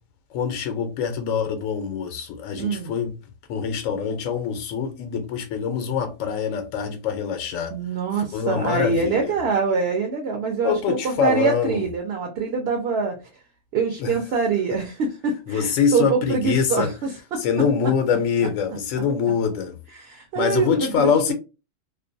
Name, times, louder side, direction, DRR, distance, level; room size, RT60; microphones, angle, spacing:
voice 1, 0.3-3.1 3.5-7.7 8.3-9.4 10.6-11.8 14.0-14.1 15.5-16.9 17.4-19.8 20.4-21.3, left 6 dB, 85° left, 1.0 m, -24 dB
voice 2, 2.6-2.9 7.7-13.2 13.7-17.5 19.9-21.3, right 4 dB, 65° right, 0.7 m, -25 dB
2.5 x 2.2 x 2.5 m
omnidirectional pair, 1.4 m